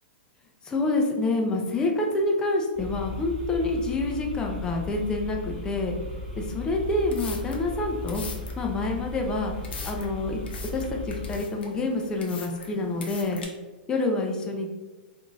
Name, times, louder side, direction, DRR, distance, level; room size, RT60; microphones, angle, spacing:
voice 1, 0.6-5.9 6.4-8.2 8.6-9.5 9.8-10.4 10.7-13.4 13.9-14.7, left 2 dB, 15° left, 1 dB, 0.4 m, -27 dB
sound 1, 2.7-11.4, left 2 dB, 5° right, 0.9 m, -36 dB
sound 2, 6.9-13.4, left 5 dB, 85° left, 0.6 m, -42 dB
2.5 x 2.4 x 3.0 m, 1.2 s
supercardioid pair, 160°, 5 cm